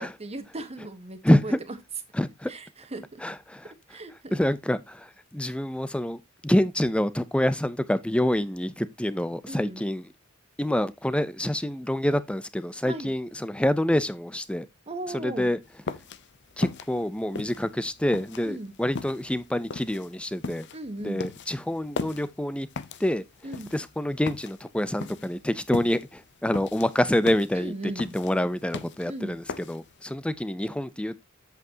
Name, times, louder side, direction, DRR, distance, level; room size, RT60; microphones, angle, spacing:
voice 1, 0.0-1.5 2.5-3.2 3.9-4.4 9.5-9.8 12.9-13.1 14.9-15.5 18.4-18.7 20.7-21.3 23.4-23.7 27.5-28.2 29.0-29.4, right 1 dB, 30° right, 1.3 m, -37 dB
voice 2, 1.2-1.6 2.2-2.5 3.2-3.7 4.3-10.0 10.6-14.7 15.1-15.6 16.6-20.7 21.0-22.7 23.0-23.2 23.7-31.2, left 1 dB, 5° left, 0.5 m, -27 dB
sound 1, 15.7-30.0, left 4 dB, 55° left, 0.7 m, -38 dB
8.1 x 7.6 x 2.8 m
head